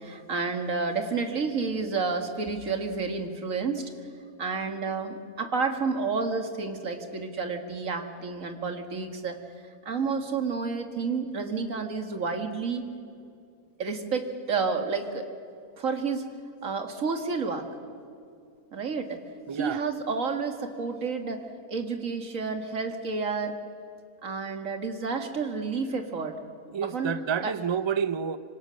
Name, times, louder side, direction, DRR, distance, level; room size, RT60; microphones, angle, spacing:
voice 1, 0.0-3.8 4.4-9.4 9.9-12.9 13.8-15.3 15.8-16.3 16.6-17.7 18.7-19.2 19.6-23.6 24.2-26.4 26.9-27.1 27.4-27.5, right 4 dB, 60° right, 2.3 m, -30 dB
voice 2, 19.5-19.9 26.7-28.4, right 7 dB, 40° right, 0.4 m, -29 dB
26.0 x 25.5 x 6.5 m
omnidirectional pair, 1.6 m